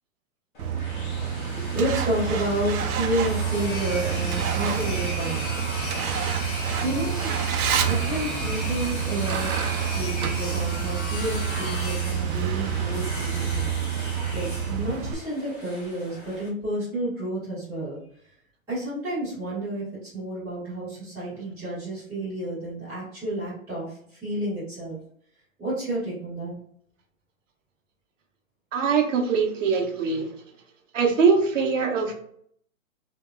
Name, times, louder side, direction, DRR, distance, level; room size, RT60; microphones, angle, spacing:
sound 1, 0.5-16.5, left 1 dB, 35° left, 0.8 m, -36 dB
Truck, 0.6-15.1, right 8 dB, 85° right, 0.6 m, -28 dB
voice 1, 1.5-5.5 6.8-7.3 7.8-9.7 9.9-13.7 14.0-18.0 18.7-19.8 20.1-25.0 25.6-26.5, right 1 dB, 5° right, -12 dB, 1.4 m, -30 dB
voice 2, 28.7-30.3 30.9-32.1, right 5 dB, 60° right, 3 dB, 0.9 m, -22 dB
3.4 x 2.9 x 2.3 m, 0.64 s
hypercardioid pair, 180°, 42 cm